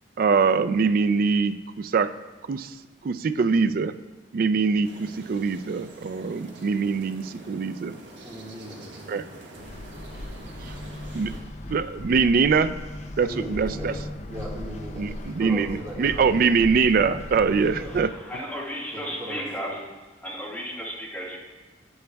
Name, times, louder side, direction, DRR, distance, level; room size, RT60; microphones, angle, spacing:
voice 1, 0.2-2.1 2.5-2.7 3.0-3.9 4.3-7.9 9.1-9.2 11.1-11.3 11.7-12.8 13.2-13.9 15.0-18.1, right 5 dB, 50° right, 12 dB, 0.3 m, -23 dB
sound 1, 4.8-11.4, right 2 dB, 80° right, 1.3 m, -45 dB
voice 2, 8.2-9.3 13.2-16.4 17.8-18.0 18.9-19.8, right 1 dB, 20° right, -4 dB, 1.8 m, -38 dB
sound 2, 9.6-18.0, left 1 dB, 40° left, 0.5 m, -37 dB
voice 3, 17.9-19.7 20.2-21.4, equal, 10° left, -5 dB, 1.6 m, -34 dB
9.1 x 8.5 x 2.3 m, 1.3 s
head